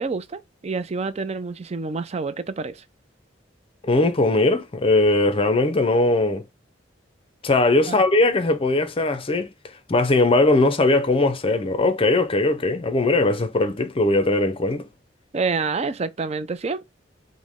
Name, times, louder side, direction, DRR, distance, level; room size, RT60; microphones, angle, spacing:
voice 1, 0.0-2.8 7.9-8.0 15.3-16.8, right 4 dB, 35° right, 0.4 m, -28 dB
voice 2, 3.8-6.4 7.4-9.5 9.9-14.9, left 2 dB, 30° left, 0.5 m, -20 dB
5.2 x 2.1 x 3.4 m
head